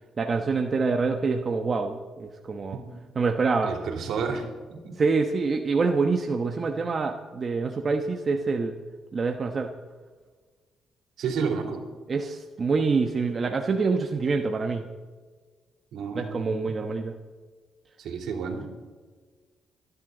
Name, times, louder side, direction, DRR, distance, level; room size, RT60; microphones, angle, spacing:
voice 1, 0.2-2.8 3.2-3.7 5.0-8.8 9.1-9.7 12.1-14.9 16.1-17.1, right 4 dB, 40° right, 4 dB, 1.1 m, -26 dB
voice 2, 3.6-4.9 11.2-11.8 15.9-16.6 18.0-18.7, right 5 dB, 75° right, 2 dB, 3.3 m, -31 dB
25.5 x 11.0 x 4.0 m, 1.5 s
cardioid pair, 90°, 0 cm